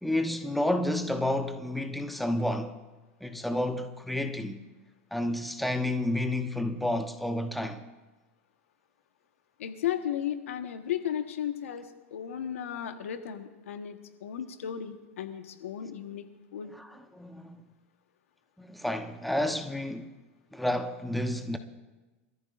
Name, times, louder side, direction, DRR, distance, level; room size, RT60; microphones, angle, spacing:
voice 1, 0.0-2.8 3.2-4.6 5.1-7.8 16.8-16.9 17.1-17.6 18.6-20.1 20.5-21.6, left 1 dB, ahead, 1.0 m, -30 dB
voice 2, 9.6-16.7, left 10 dB, 85° left, 1.3 m, -35 dB
26.5 x 14.0 x 2.5 m
hypercardioid pair, 120°, 7 cm